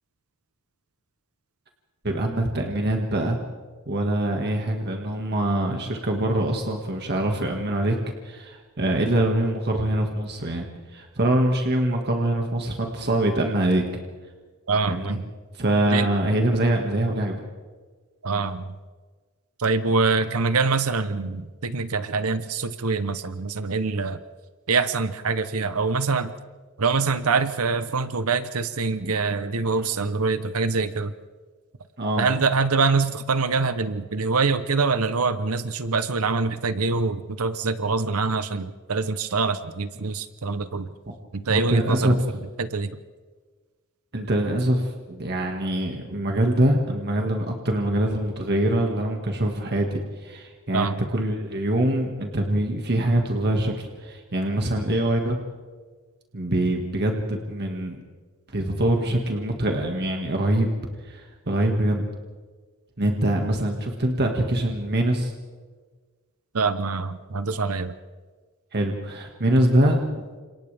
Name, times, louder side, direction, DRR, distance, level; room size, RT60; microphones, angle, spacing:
voice 1, 2.0-3.4 3.9-8.0 8.2-10.7 10.9-13.8 14.9-15.2 15.5-17.4 29.8-29.9 32.0-32.3 41.5-42.2 44.1-55.4 56.3-58.0 58.5-60.7 61.1-62.0 63.0-65.3 68.7-70.2, right 1 dB, 50° right, 2 dB, 1.9 m, -24 dB
voice 2, 14.7-15.3 15.9-16.1 18.2-18.7 19.6-24.2 24.7-26.3 26.8-31.1 32.2-40.9 41.3-42.1 42.6-43.0 50.7-51.0 66.5-68.0, right 4 dB, 75° right, 12 dB, 0.8 m, -24 dB
30.0 x 27.5 x 3.5 m, 1.4 s
head